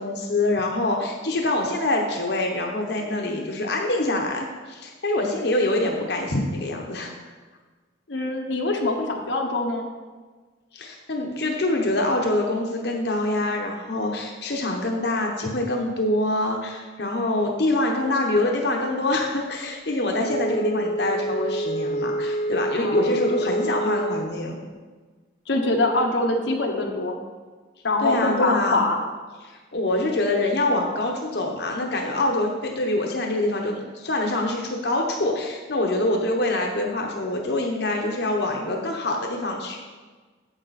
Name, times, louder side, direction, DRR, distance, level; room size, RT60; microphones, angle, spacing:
voice 1, 0.0-7.1 10.7-24.6 28.0-28.8 29.4-39.8, left 2 dB, 65° left, 1 dB, 1.0 m, -25 dB
voice 2, 8.1-9.9 22.8-23.1 25.5-27.2 27.8-29.0, left 2 dB, 90° left, 2 dB, 1.1 m, -24 dB
Wind instrument woodwind instrument, 20.2-24.4, right 1 dB, 40° left, 0.4 m, -27 dB
8.8 x 7.5 x 4.1 m, 1.4 s
head